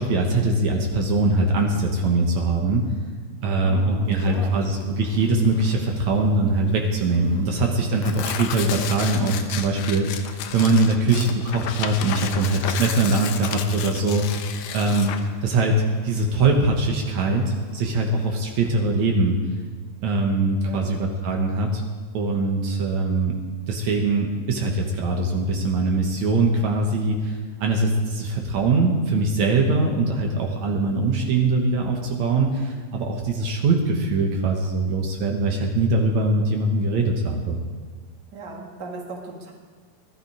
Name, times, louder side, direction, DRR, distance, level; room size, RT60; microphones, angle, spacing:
voice 1, 0.0-2.9 3.4-14.5 14.7-15.1 15.4-15.8 16.0-19.4 20.0-21.8 22.1-23.3 23.7-37.6, right 2 dB, 70° right, 1 dB, 2.5 m, -22 dB
voice 2, 3.4-4.5 20.6-21.0 38.3-39.5, right 3 dB, 35° right, -1 dB, 2.4 m, -37 dB
Tearing, 4.1-18.3, left 8 dB, 90° left, 2.4 m, -34 dB
19.0 x 12.5 x 4.9 m, 1.5 s
omnidirectional pair, 3.4 m